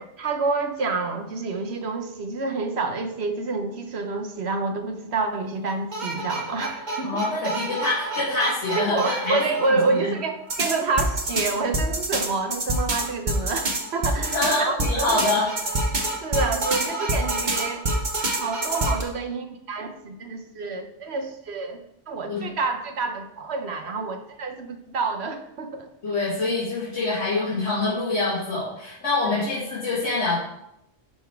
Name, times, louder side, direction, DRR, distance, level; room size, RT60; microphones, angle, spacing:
voice 1, 0.2-7.5 8.8-15.2 16.2-17.9 18.4-21.8 22.1-25.9, right 4 dB, 65° right, 6 dB, 1.2 m, -28 dB
sound 1, 5.7-10.2 10.5-19.0, right 1 dB, 40° right, 1.3 m, -27 dB
voice 2, 7.0-9.4 9.7-10.1 14.2-15.4 22.3-22.5 26.0-30.4, left 3 dB, 70° left, -9 dB, 2.4 m, -25 dB
11.0 x 4.5 x 4.5 m, 0.81 s
omnidirectional pair, 1.2 m